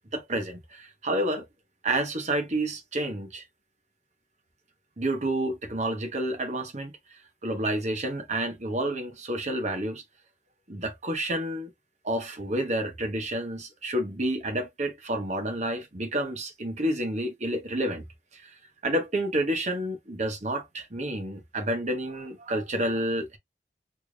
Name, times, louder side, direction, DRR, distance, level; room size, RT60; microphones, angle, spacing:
voice 1, 0.1-1.5 1.8-3.4 5.0-10.0 10.7-11.7 12.0-18.0 18.3-18.6 18.8-23.4, right 1 dB, 40° right, 1.2 m, -29 dB
3.5 x 3.3 x 2.4 m
head